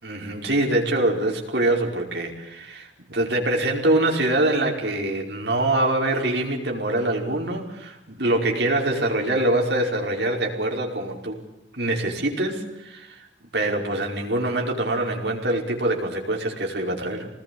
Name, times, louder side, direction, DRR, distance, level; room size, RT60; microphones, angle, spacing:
voice 1, 0.0-11.4 11.7-13.1 13.5-17.3, right 1 dB, 60° right, 1 dB, 5.1 m, -24 dB
25.5 x 20.0 x 8.6 m, 0.90 s
head